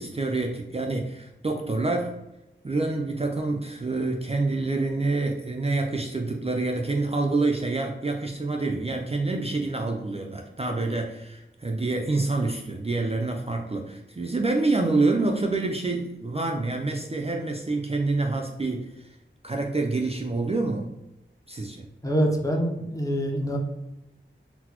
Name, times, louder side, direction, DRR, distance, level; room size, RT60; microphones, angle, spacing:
voice 1, 0.0-2.1 2.6-18.9 19.4-20.9 21.5-21.8, right 3 dB, 30° right, 2 dB, 0.4 m, -27 dB
voice 2, 22.0-23.6, equal, 15° left, 1 dB, 0.6 m, -25 dB
3.9 x 2.0 x 2.9 m, 0.92 s
wide cardioid pair, 50°, 21 cm